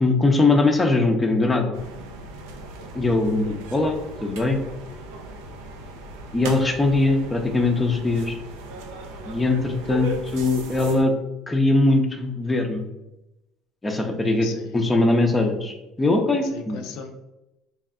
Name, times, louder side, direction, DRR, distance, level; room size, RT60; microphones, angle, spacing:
voice 1, 0.0-1.8 2.9-4.6 6.3-8.4 9.3-11.1 11.5-12.9 13.8-14.5 14.7-16.8, left 2 dB, 15° left, 3 dB, 0.6 m, -21 dB
sound 1, 1.7-11.0, right 1 dB, 85° right, 0.5 m, -37 dB
voice 2, 14.2-15.0 16.4-17.1, left 5 dB, 75° left, 4 dB, 0.4 m, -38 dB
3.5 x 2.2 x 3.6 m, 0.94 s
supercardioid pair, 95°, 0 cm